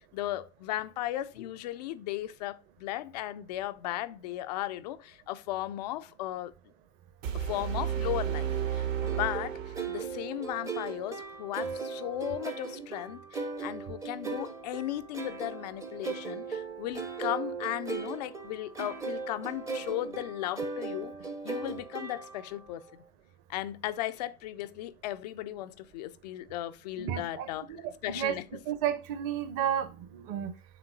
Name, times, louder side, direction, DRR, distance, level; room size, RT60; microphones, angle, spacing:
voice 1, 0.0-6.5 7.3-21.1 21.4-22.8 23.5-27.7 28.0-28.5, left 14 dB, 30° left, 0.4 m, -36 dB
sound 1, 7.2-10.2, right 9 dB, 60° right, 2.0 m, -32 dB
sound 2, 9.0-22.6, right 4 dB, 5° right, 0.7 m, -38 dB
voice 2, 27.0-27.5 27.8-28.3 28.7-30.5, right 10 dB, 35° right, 1.1 m, -32 dB
9.0 x 3.7 x 3.8 m
figure-of-eight pair, 110°, 43 cm